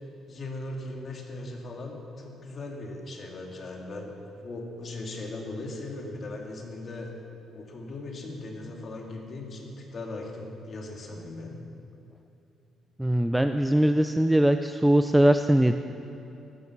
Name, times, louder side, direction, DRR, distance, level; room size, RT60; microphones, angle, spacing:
voice 1, 0.3-4.1 4.4-7.1 7.5-11.6, left 2 dB, 35° left, 1 dB, 2.2 m, -38 dB
voice 2, 13.0-15.7, right 1 dB, 5° right, 8 dB, 0.4 m, -21 dB
14.5 x 12.5 x 7.3 m, 2.9 s
cardioid pair, 170°, 0 cm